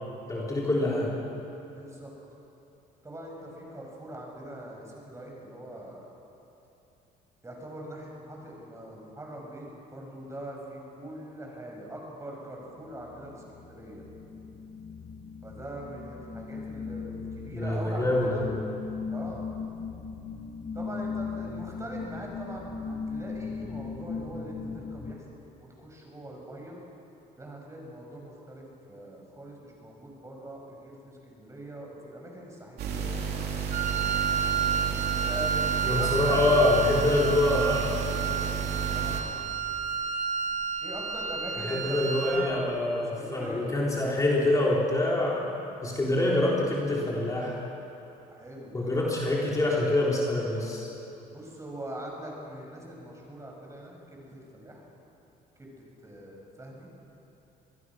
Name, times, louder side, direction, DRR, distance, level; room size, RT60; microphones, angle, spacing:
voice 1, 0.3-1.1 17.5-18.7 35.9-38.1 41.6-45.5 45.8-47.6 48.7-50.9, left 2 dB, 20° left, -4 dB, 3.6 m, -26 dB
voice 2, 1.7-2.1 3.0-6.1 7.4-14.0 15.4-18.5 19.1-19.4 20.7-25.2 25.6-26.8 27.4-31.0 31.3-33.1 35.1-36.4 38.9-39.2 40.8-43.8 48.3-49.2 51.3-54.8 55.6-55.7 56.0-56.9, right 1 dB, 15° right, -1 dB, 6.5 m, -42 dB
sound 1, 12.7-25.1, left 5 dB, 40° left, 1.7 m, -38 dB
sound 2, 32.8-39.2, right 6 dB, 70° right, 3.1 m, -32 dB
Wind instrument woodwind instrument, 33.7-42.6, right 7 dB, 45° right, 1.5 m, -30 dB
24.5 x 21.0 x 6.3 m, 2.9 s
cardioid pair, 110°, 17 cm